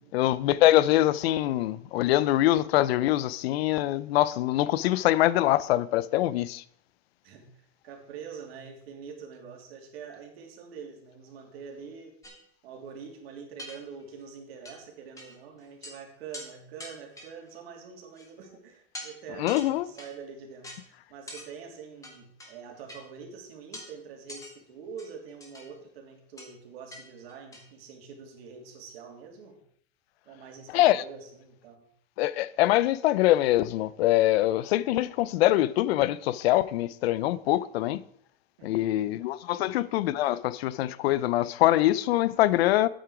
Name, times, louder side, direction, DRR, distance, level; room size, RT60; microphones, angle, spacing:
voice 1, 0.1-6.6 19.4-19.9 30.7-31.0 32.2-38.0 38.6-42.9, left 15 dB, 80° left, 0.6 m, -24 dB
voice 2, 7.2-12.3 12.6-29.6 30.3-31.8 38.6-39.1 39.5-39.7, right 6 dB, 75° right, 2.9 m, -45 dB
sound 1, 12.2-12.4 13.0-13.1 13.6-14.2 14.6-14.8 15.2-15.4 15.6-16.0 16.3-16.5 16.8-17.5 18.2-18.5 18.9-19.1 19.5-20.2 20.6-20.8 21.3-21.5 22.0-22.5 22.9-23.0 23.7-23.9 24.3-24.5 25.0-25.7 26.4-26.5 26.9-27.0 27.3-27.7, left 1 dB, 10° left, 1.8 m, -43 dB
9.1 x 8.8 x 4.8 m
supercardioid pair, 155°, 30 cm